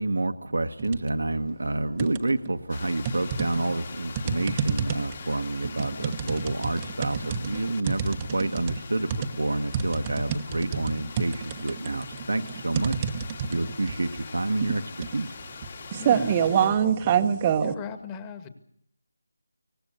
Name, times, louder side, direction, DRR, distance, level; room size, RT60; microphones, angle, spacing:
voice 1, 0.0-9.1 9.4-13.1 13.5-14.8 15.1-15.4, right 2 dB, 75° right, 8 dB, 1.4 m, -28 dB
sound 1, 0.8-1.2 1.6-2.5 3.0-17.7, right 8 dB, 20° right, 1.1 m, -27 dB
sound 2, 2.7-16.7, left 5 dB, 40° left, 2.3 m, -43 dB
voice 2, 16.0-18.5, left 6 dB, 15° left, 10 dB, 1.9 m, -39 dB
23.5 x 19.0 x 8.0 m, 0.66 s
figure-of-eight pair, 165°, 0 cm